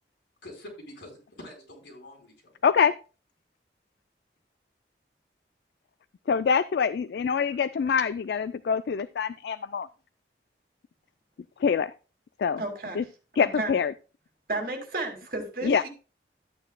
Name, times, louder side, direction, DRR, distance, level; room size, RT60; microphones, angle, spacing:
voice 1, 0.4-2.5, left 1 dB, 90° left, 0 dB, 4.3 m, -46 dB
voice 2, 2.6-2.9 6.3-9.9 11.6-11.9 12.4-12.6 13.0-13.1 13.4-13.9 15.6-15.8, left 6 dB, 70° left, 15 dB, 0.3 m, -25 dB
voice 3, 12.6-13.1 13.4-13.7 14.5-15.9, right 2 dB, 55° right, 3 dB, 2.3 m, -33 dB
13.0 x 8.9 x 2.2 m, 0.34 s
head